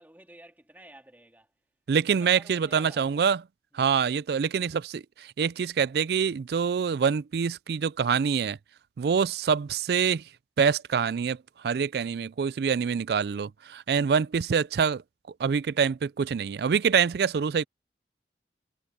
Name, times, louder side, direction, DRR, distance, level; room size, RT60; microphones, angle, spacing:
voice 1, 0.0-1.5 2.3-3.2 3.7-3.9, right 1 dB, 10° right, 2.3 m, -52 dB
voice 2, 1.9-3.4 3.7-8.6 9.0-10.2 10.6-11.4 11.6-15.0 15.4-17.6, right 6 dB, 60° right, 0.3 m, -25 dB
head